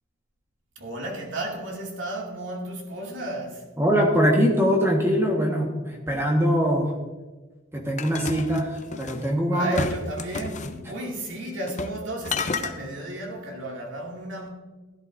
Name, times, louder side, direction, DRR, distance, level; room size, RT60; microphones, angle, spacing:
voice 1, 0.8-3.7 9.5-14.5, right 1 dB, 80° right, 2.4 m, -33 dB
voice 2, 3.8-6.9 7.7-9.9, equal, 15° right, 1.4 m, -22 dB
sound 1, 8.0-9.3 9.7-10.8 11.7-12.0 12.2-12.7, left 4 dB, 40° left, 0.7 m, -31 dB
16.0 x 11.0 x 2.6 m
head